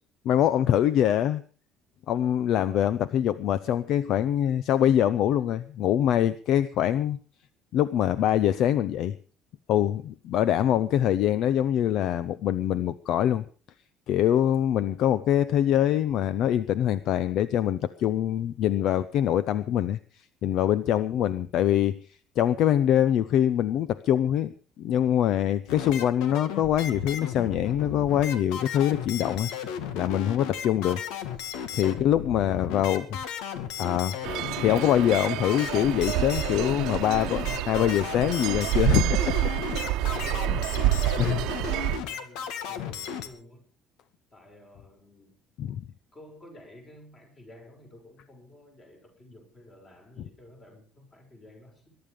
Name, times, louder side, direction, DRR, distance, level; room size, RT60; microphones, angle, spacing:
voice 1, 0.2-1.4 2.1-7.2 7.7-9.2 9.7-13.4 14.1-20.0 20.4-22.0 22.4-24.5 24.8-29.5 29.9-31.0 31.7-33.2 33.8-34.2 34.6-39.8 41.2-41.4 45.6-45.8, left 11 dB, 50° left, 15 dB, 0.7 m, -24 dB
sound 1, 25.7-43.3, left 8 dB, 85° left, 2.2 m, -35 dB
voice 2, 30.6-31.0 40.1-40.8 41.2-43.6 44.3-45.4 46.1-52.0, left 1 dB, 20° left, 2 dB, 6.4 m, -50 dB
sound 2, 34.2-42.0, right 15 dB, 65° right, 1.0 m, -28 dB
22.0 x 11.5 x 5.1 m, 0.39 s
cardioid pair, 170°, 0 cm